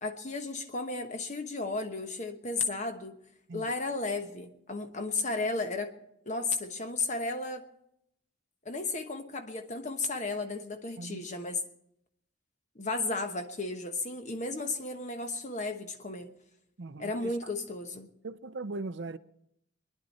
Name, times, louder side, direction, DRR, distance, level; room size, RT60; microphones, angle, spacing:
voice 1, 0.0-3.2 3.5-5.9 6.2-7.6 8.6-11.6 12.7-16.3 17.0-18.1, left 3 dB, 35° left, 1.2 m, -34 dB
voice 2, 16.8-17.4 18.2-19.2, right 3 dB, 65° right, 0.6 m, -39 dB
24.5 x 11.0 x 4.3 m
head